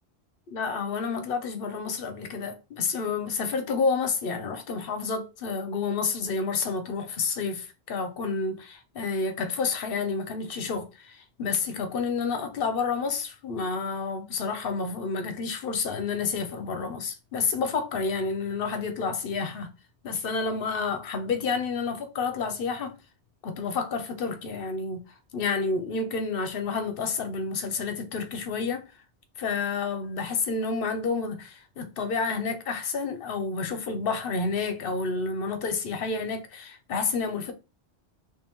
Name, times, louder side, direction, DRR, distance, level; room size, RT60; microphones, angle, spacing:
voice 1, 0.5-19.7 20.0-22.9 23.4-25.0 25.3-28.9 29.4-37.5, left 4 dB, 60° left, 0.8 m, -29 dB
3.1 x 2.9 x 3.5 m
omnidirectional pair, 1.1 m